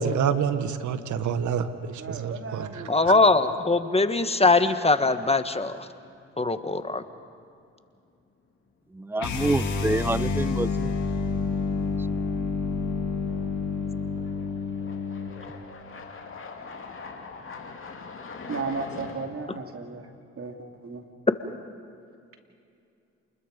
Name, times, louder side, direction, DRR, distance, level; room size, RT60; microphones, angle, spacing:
voice 1, 0.0-2.8, right 7 dB, 70° right, 10 dB, 1.4 m, -27 dB
sound 1, 1.4-1.9 2.3-2.4 5.3-5.4 6.7-7.0 7.3-7.4 12.7-12.8 13.6-19.3, left 4 dB, 40° left, 2.7 m, -42 dB
voice 2, 2.0-3.5 18.5-20.1 20.4-20.6 20.8-21.0, right 4 dB, 45° right, 4 dB, 2.7 m, -35 dB
voice 3, 2.9-5.9 6.4-7.0 19.5-19.6, left 3 dB, 20° left, 10 dB, 1.4 m, -22 dB
voice 4, 8.9-11.0, right 2 dB, 5° right, 20 dB, 0.4 m, -27 dB
sound 2, 9.2-15.3, left 4 dB, 70° left, 2.7 m, -28 dB
28.5 x 21.0 x 5.3 m, 2.5 s
supercardioid pair, 55°, 30 cm